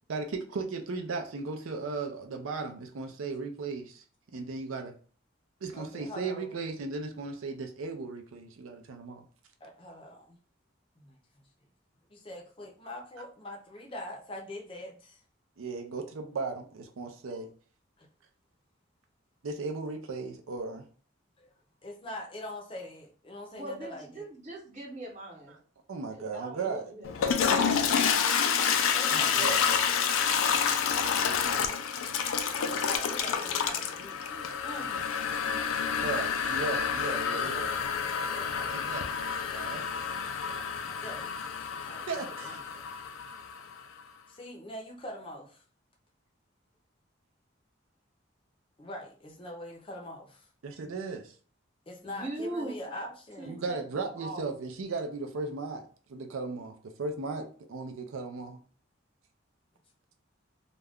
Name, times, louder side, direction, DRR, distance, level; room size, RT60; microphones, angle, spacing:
voice 1, 0.1-4.0 4.3-5.0 5.6-9.2 15.6-17.5 19.4-20.9 25.9-26.9 29.1-29.7 36.0-37.7 38.5-39.1 39.5-39.9 40.7-40.8 42.1-42.6 50.6-51.3 53.5-58.6, right 4 dB, 90° right, 0.5 m, -36 dB
voice 2, 5.7-6.5 9.6-10.4 11.0-11.2 12.1-15.2 18.0-18.1 21.4-21.5 21.8-24.3 28.9-29.9 31.3-31.8 32.4-35.1 38.3-38.8 40.5-41.5 41.8-42.8 44.3-45.6 48.8-50.5 50.8-50.9 51.9-53.6, left 1 dB, 25° left, 0.5 m, -43 dB
voice 3, 23.5-25.5 26.2-28.1 52.0-53.1 53.4-54.5, right 1 dB, 35° right, 0.8 m, -41 dB
Toilet flush, 27.0-43.8, left 7 dB, 90° left, 0.4 m, -29 dB
2.4 x 2.1 x 3.4 m
head